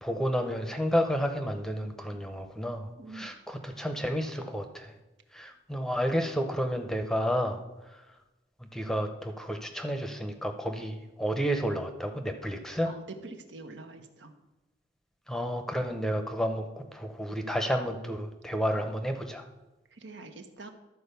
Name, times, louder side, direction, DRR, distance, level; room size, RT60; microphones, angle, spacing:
voice 1, 0.0-4.9 5.3-7.6 7.9-8.0 8.7-12.9 15.3-19.5, equal, 5° left, 6 dB, 0.7 m, -31 dB
voice 2, 3.0-3.3 12.8-14.3 19.9-20.7, right 3 dB, 80° right, 6 dB, 1.1 m, -44 dB
12.5 x 4.6 x 6.8 m, 1.0 s
head